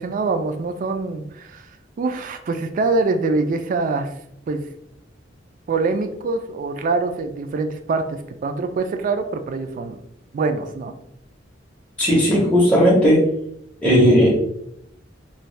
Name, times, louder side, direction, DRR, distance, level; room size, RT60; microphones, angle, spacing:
voice 1, 0.0-1.7 2.0-4.1 4.5-4.6 5.7-10.0 10.3-10.9, right 3 dB, 45° right, 7 dB, 0.3 m, -24 dB
voice 2, 12.0-13.2 13.8-14.3, equal, 5° left, -6 dB, 0.6 m, -15 dB
2.6 x 2.2 x 3.2 m, 0.75 s
head